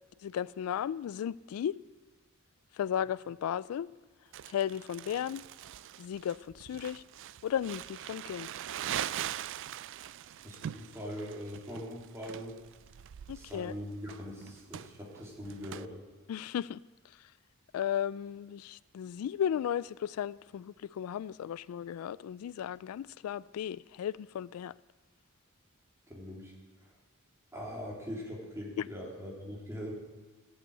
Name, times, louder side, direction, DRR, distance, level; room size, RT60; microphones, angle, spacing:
voice 1, 0.2-1.8 2.7-3.9 4.5-5.4 6.0-7.0 7.4-8.5 13.3-13.7 16.3-17.3 17.7-24.7 28.8-28.9, left 9 dB, 80° left, 0.3 m, -35 dB
Crumpling crinkling, 4.3-15.8, right 11 dB, 60° right, 0.3 m, -42 dB
voice 2, 10.2-12.6 13.3-15.9 26.1-26.5 26.8-26.9 27.5-29.9, equal, 15° right, 3.1 m, -42 dB
14.0 x 8.2 x 8.3 m
head